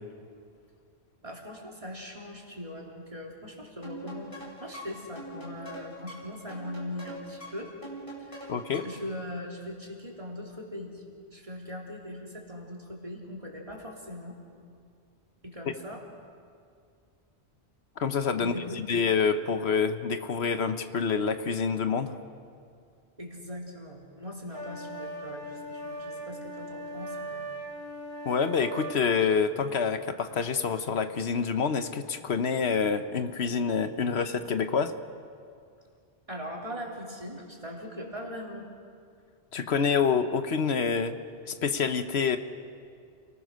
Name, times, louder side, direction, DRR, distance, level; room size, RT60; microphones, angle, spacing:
voice 1, 1.2-7.7 8.2-8.5 8.8-11.0 11.3-14.4 15.4-16.0 18.4-18.8 23.2-27.5 36.3-38.7, left 1 dB, 30° right, -1 dB, 3.3 m, -40 dB
sound 1, 3.8-9.1, right 1 dB, 30° left, 4.4 m, -43 dB
voice 2, 8.5-8.8 18.0-22.2 28.2-34.9 39.5-41.2 41.5-42.4, left 6 dB, 75° left, 10 dB, 1.2 m, -27 dB
sound 2, 24.5-29.0, right 1 dB, 15° left, 5.3 m, -39 dB
29.0 x 19.5 x 6.4 m, 2.3 s
omnidirectional pair, 1.1 m